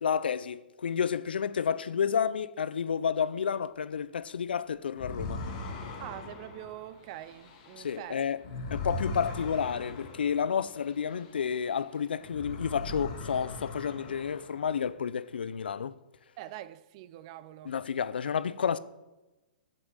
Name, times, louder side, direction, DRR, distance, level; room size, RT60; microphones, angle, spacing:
voice 1, 0.0-5.4 7.8-8.4 8.7-16.0 17.6-18.8, left 7 dB, 90° left, 0.5 m, -30 dB
sound 1, 4.9-11.8 12.2-14.9, left 2 dB, 40° left, 2.0 m, -40 dB
voice 2, 6.0-8.2 8.8-9.0 16.4-17.7, right 13 dB, 40° right, 0.5 m, -44 dB
8.3 x 6.8 x 7.4 m
hypercardioid pair, 145°, 5 cm